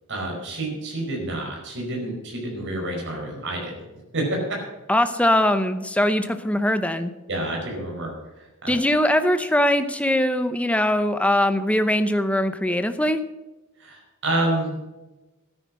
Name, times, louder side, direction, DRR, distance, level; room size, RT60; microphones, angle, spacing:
voice 1, 0.1-3.8 4.1-4.4 7.3-8.7 13.8-14.7, right 1 dB, 55° right, 0 dB, 5.0 m, -28 dB
voice 2, 4.9-7.1 8.7-13.2, left 1 dB, 5° left, 9 dB, 0.7 m, -21 dB
13.0 x 10.0 x 6.3 m, 1.1 s
head